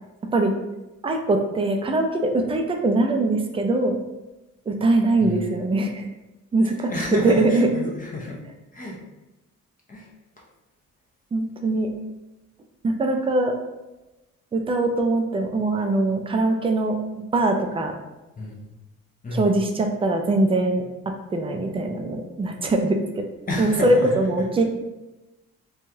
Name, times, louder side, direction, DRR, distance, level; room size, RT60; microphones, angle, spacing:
voice 1, 1.0-4.0 4.7-6.1 6.5-6.9 7.2-7.7 11.3-11.9 12.8-13.5 14.5-17.0 17.3-17.9 19.3-23.2 23.6-24.6, right 2 dB, 20° right, 4 dB, 0.4 m, -22 dB
voice 2, 5.2-5.6 6.8-8.4 8.7-9.0 9.9-10.1 18.4-18.7 19.2-19.6 23.5-24.2, left 2 dB, 25° left, -3 dB, 0.6 m, -30 dB
3.0 x 2.3 x 2.7 m, 1.0 s
cardioid pair, 90°, 30 cm